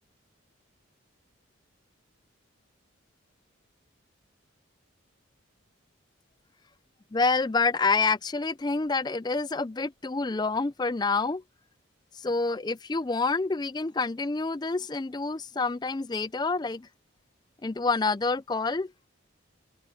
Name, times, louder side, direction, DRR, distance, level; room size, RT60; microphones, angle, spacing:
voice 1, 7.1-11.4 12.1-16.9 17.6-18.9, left 3 dB, 20° left, 0.4 m, -27 dB
open air
head